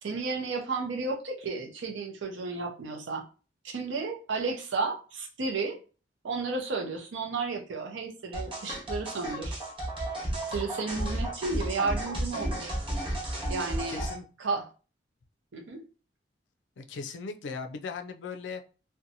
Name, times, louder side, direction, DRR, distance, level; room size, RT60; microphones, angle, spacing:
voice 1, 0.0-3.2 3.6-5.8 6.2-9.6 10.5-12.8 13.5-14.0 14.4-14.6 15.5-15.8, right 4 dB, 90° right, 2 dB, 0.6 m, -32 dB
sound 1, 8.3-14.1, right 1 dB, 25° right, 0.8 m, -33 dB
voice 2, 13.9-14.3 16.8-18.7, left 5 dB, 80° left, 5 dB, 0.4 m, -38 dB
2.6 x 2.1 x 2.7 m, 0.36 s
head